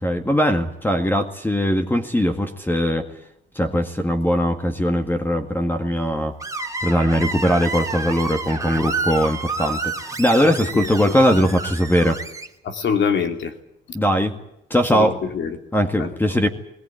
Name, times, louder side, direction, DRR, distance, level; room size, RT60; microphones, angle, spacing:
voice 1, 0.0-3.1 3.6-6.3 6.8-12.2 13.9-14.4 14.7-15.2 15.7-16.5, equal, 10° left, 5 dB, 2.0 m, -20 dB
Screech, 6.4-12.5, right 3 dB, 15° right, 2.5 m, -29 dB
voice 2, 10.4-11.1 12.6-13.5 14.9-15.6 16.0-16.1, left 6 dB, 65° left, 6 dB, 2.8 m, -25 dB
20.5 x 19.0 x 9.5 m, 0.82 s
cardioid pair, 90°, 20 cm